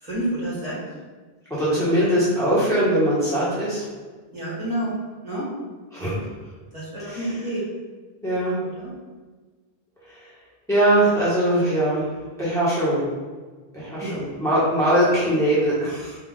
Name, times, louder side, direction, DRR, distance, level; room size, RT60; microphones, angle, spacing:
voice 1, 0.0-0.8 1.7-1.8 4.3-5.0 5.2-5.5 6.7-7.6 8.8-8.9 14.0-14.1, right 1 dB, 35° right, -9 dB, 1.7 m, -29 dB
voice 2, 1.5-3.8 5.9-6.1 7.0-7.3 8.2-8.6 10.1-10.2 10.7-12.1 12.4-13.0 13.7-16.2, right 1 dB, 5° left, -10 dB, 1.3 m, -21 dB
3.8 x 2.7 x 3.8 m, 1.3 s
omnidirectional pair, 1.1 m